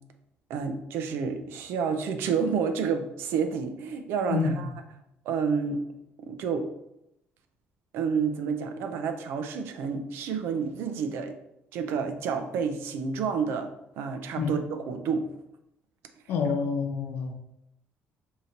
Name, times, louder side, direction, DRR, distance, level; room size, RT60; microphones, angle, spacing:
voice 1, 0.5-4.7 5.3-5.8 6.3-6.7 7.9-11.3 11.7-13.7 14.0-14.6 14.9-15.3, right 6 dB, 75° right, 7 dB, 0.5 m, -29 dB
voice 2, 4.3-4.7 14.4-14.5 16.3-17.3, left 5 dB, 70° left, 3 dB, 0.7 m, -28 dB
5.0 x 2.8 x 2.8 m, 0.84 s
cardioid pair, 145°, 4 cm